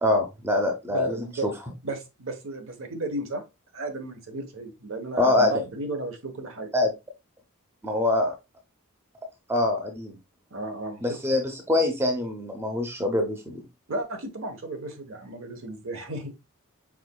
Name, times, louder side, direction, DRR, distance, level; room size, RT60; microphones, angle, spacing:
voice 1, 0.0-1.5 5.1-5.5 6.7-6.9 7.8-8.3 9.5-10.1 11.0-13.6, left 2 dB, 10° right, 0.6 m, -24 dB
voice 2, 0.9-1.5 1.8-3.4 3.7-6.7 10.5-11.2 13.9-16.3, right 2 dB, 60° right, 1.0 m, -33 dB
4.8 x 4.0 x 2.2 m
head